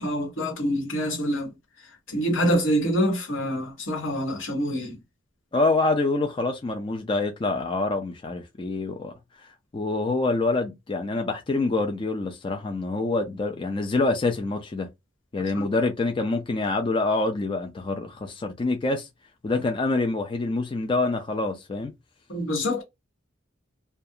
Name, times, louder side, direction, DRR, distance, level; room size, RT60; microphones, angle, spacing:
voice 1, 0.0-1.5 2.1-5.0 15.5-15.7 22.3-22.8, equal, 90° left, 1.2 m, -26 dB
voice 2, 5.5-9.1 9.7-14.9 15.3-19.1 19.4-21.9, left 3 dB, 25° left, 0.3 m, -26 dB
2.4 x 2.2 x 2.7 m
head